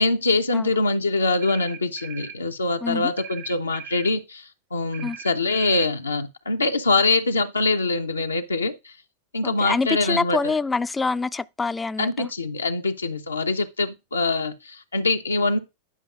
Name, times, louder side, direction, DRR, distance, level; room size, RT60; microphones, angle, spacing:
voice 1, 0.0-8.9 9.3-10.5 12.0-15.6, left 3 dB, 80° left, 0.5 m, -24 dB
sound 1, 1.4-2.4 3.2-4.2 4.9-5.9, right 9 dB, 35° right, 0.5 m, -40 dB
voice 2, 2.8-3.1 5.0-5.2 9.4-12.3, left 4 dB, 10° left, 0.3 m, -26 dB
9.5 x 5.6 x 2.3 m
figure-of-eight pair, 90°, 0 cm